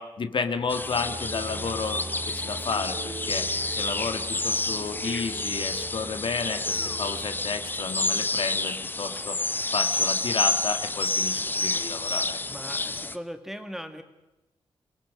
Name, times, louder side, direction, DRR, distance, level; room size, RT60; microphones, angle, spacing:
voice 1, 0.0-9.4 9.7-12.4, left 5 dB, 55° left, 8 dB, 1.5 m, -32 dB
sound 1, 0.6-8.1, right 3 dB, 45° right, 1.6 m, -41 dB
sound 2, 0.7-13.2, left 2 dB, 20° left, 0.7 m, -29 dB
voice 2, 12.5-14.0, equal, 5° right, 8 dB, 1.7 m, -38 dB
26.0 x 18.5 x 6.2 m, 0.98 s
cardioid pair, 100°, 10 cm